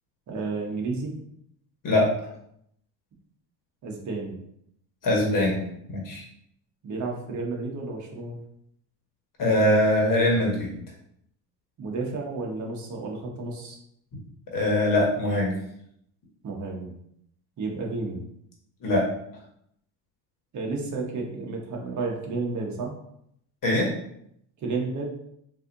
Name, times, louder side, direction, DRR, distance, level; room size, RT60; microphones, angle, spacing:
voice 1, 0.3-1.1 3.8-4.3 6.8-8.4 11.8-13.8 16.4-16.9 17.6-18.2 20.5-22.9 24.6-25.1, right 3 dB, 40° right, 0 dB, 1.0 m, -31 dB
voice 2, 5.0-5.6 5.9-6.2 9.4-10.7 14.5-15.5 18.8-19.1 23.6-23.9, left 1 dB, 45° left, -2 dB, 1.3 m, -22 dB
4.1 x 2.7 x 2.6 m, 0.72 s
cardioid pair, 115°, 44 cm